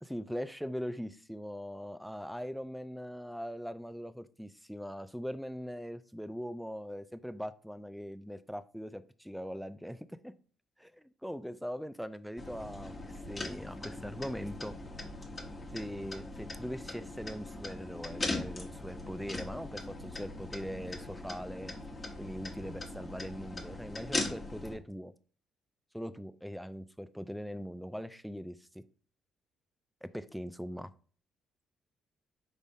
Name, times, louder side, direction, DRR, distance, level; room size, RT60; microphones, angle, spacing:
voice 1, 0.1-10.3 10.8-14.8 15.7-21.7 22.2-25.1 25.9-28.8 30.0-30.9, equal, ahead, 14 dB, 0.4 m, -41 dB
sound 1, 12.4-24.7, left 2 dB, 25° left, 1.2 m, -40 dB
5.2 x 3.4 x 2.7 m, 0.41 s
cardioid pair, 90°, 0 cm